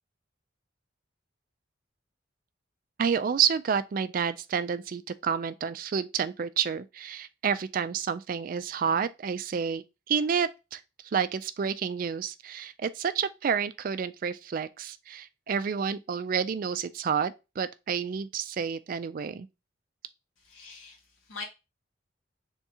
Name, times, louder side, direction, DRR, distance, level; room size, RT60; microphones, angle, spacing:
voice 1, 3.0-10.8 11.1-19.5, right 7 dB, 45° right, 0.3 m, -29 dB
voice 2, 20.4-21.4, left 4 dB, 85° left, 1.5 m, -43 dB
3.5 x 2.8 x 4.6 m
head